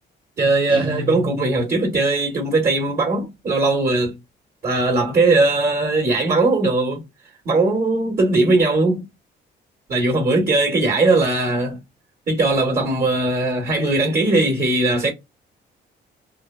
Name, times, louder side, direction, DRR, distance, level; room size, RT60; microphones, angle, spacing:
voice 1, 0.4-4.1 4.6-7.0 7.4-9.0 9.9-11.8 12.3-15.1, right 2 dB, 45° right, 1.5 m, -19 dB
Guitar, 0.7-2.0, right 2 dB, 25° right, 0.6 m, -31 dB
3.3 x 2.2 x 2.2 m
cardioid pair, 90°, 20 cm